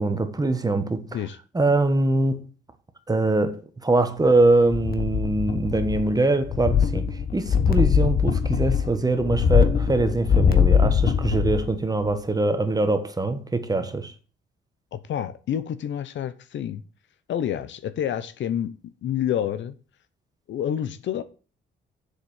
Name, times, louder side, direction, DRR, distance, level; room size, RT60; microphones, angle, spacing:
voice 1, 0.0-1.1 1.5-2.5 3.1-7.0 7.3-14.1, right 2 dB, 20° right, 1.6 m, -23 dB
sound 1, 4.7-6.2 6.4-11.7 12.1-12.2, left 7 dB, 50° left, 1.3 m, -22 dB
voice 2, 14.9-16.8 17.3-19.7 20.5-21.2, left 10 dB, 70° left, 0.9 m, -28 dB
7.6 x 6.9 x 7.2 m
cardioid pair, 90°, 20 cm